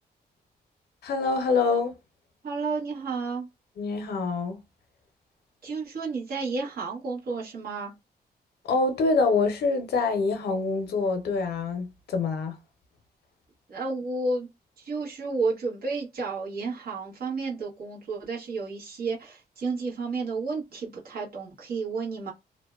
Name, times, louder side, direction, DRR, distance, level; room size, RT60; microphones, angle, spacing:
voice 1, 1.0-1.9 3.8-4.6 8.7-12.6, left 4 dB, 85° left, 0.6 m, -25 dB
voice 2, 2.4-3.5 5.6-7.9 13.7-14.5 14.8-22.3, right 4 dB, 65° right, 1.1 m, -31 dB
2.5 x 2.1 x 2.3 m
cardioid pair, 110°, 17 cm